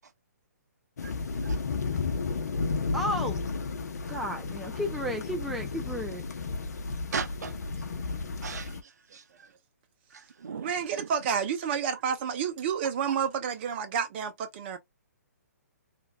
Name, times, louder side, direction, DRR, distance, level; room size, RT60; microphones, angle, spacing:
sound 1, 1.0-8.8, left 4 dB, 70° left, 0.7 m, -33 dB
voice 1, 2.9-3.5 4.1-6.2, equal, ahead, 0.5 m, -33 dB
voice 2, 7.1-9.5 10.1-11.1, right 6 dB, 70° right, 0.7 m, -39 dB
voice 3, 10.5-14.8, right 7 dB, 40° right, 0.9 m, -30 dB
3.1 x 2.6 x 2.2 m
hypercardioid pair, 135°, 9 cm